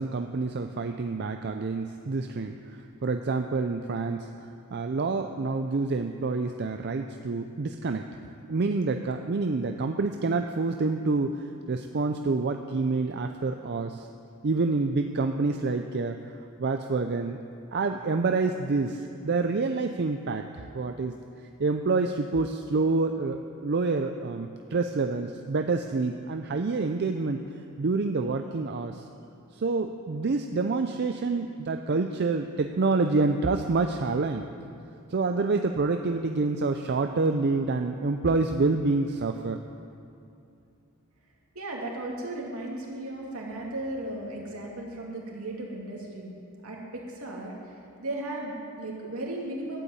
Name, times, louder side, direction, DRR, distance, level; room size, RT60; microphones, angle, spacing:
voice 1, 0.0-4.3 4.7-8.1 8.5-14.1 14.4-16.2 16.6-17.4 17.7-21.2 21.6-27.4 27.8-29.1 29.5-34.5 35.1-39.6, right 3 dB, 50° right, 5 dB, 0.5 m, -27 dB
voice 2, 41.5-46.3 46.6-49.8, right 1 dB, 70° right, -2 dB, 2.8 m, -36 dB
12.5 x 8.3 x 8.7 m, 2.6 s
head